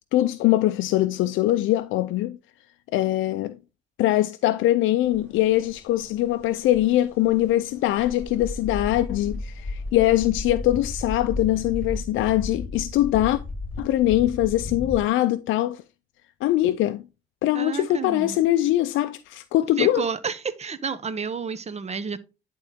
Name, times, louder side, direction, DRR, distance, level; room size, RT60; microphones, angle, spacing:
voice 1, 0.0-2.4 2.9-3.6 4.0-13.4 13.8-15.8 16.4-17.0 17.4-20.0, left 14 dB, 85° left, 0.4 m, -22 dB
sound 1, 5.0-15.0, left 2 dB, 10° left, 4.8 m, -35 dB
voice 2, 17.5-18.4 19.8-22.2, right 5 dB, 35° right, 0.9 m, -30 dB
10.5 x 3.8 x 3.5 m
cardioid pair, 90°, 20 cm